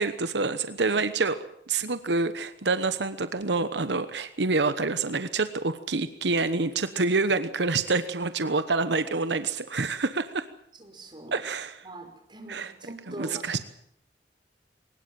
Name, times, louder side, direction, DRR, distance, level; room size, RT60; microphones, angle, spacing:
voice 1, 0.0-1.4 1.7-10.5 11.3-11.8 12.5-12.7 13.1-13.6, right 3 dB, 80° right, 11 dB, 1.1 m, -27 dB
voice 2, 10.7-11.4 11.8-13.6, right 2 dB, 25° right, 4 dB, 5.3 m, -43 dB
22.0 x 19.5 x 7.6 m, 0.74 s
head